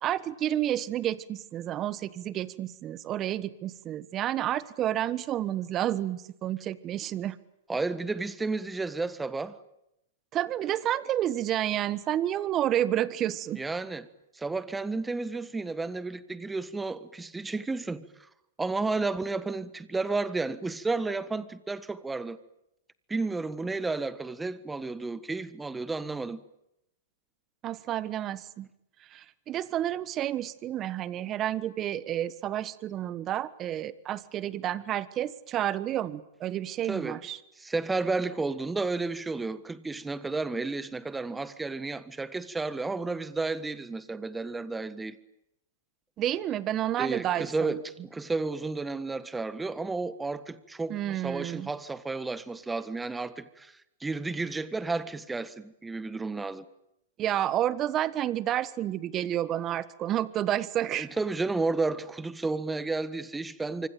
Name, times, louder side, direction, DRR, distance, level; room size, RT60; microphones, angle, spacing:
voice 1, 0.0-7.4 10.3-13.6 27.6-28.7 29.1-37.4 46.2-47.8 50.9-51.7 57.2-61.1, right 12 dB, 30° right, 1.4 m, -30 dB
voice 2, 7.7-9.6 13.6-14.1 14.3-18.0 18.6-22.4 23.1-26.4 36.9-37.2 37.6-45.2 47.0-56.6 60.9-63.9, right 3 dB, 10° right, 1.5 m, -32 dB
26.0 x 24.5 x 9.1 m
hypercardioid pair, 130°, 0 cm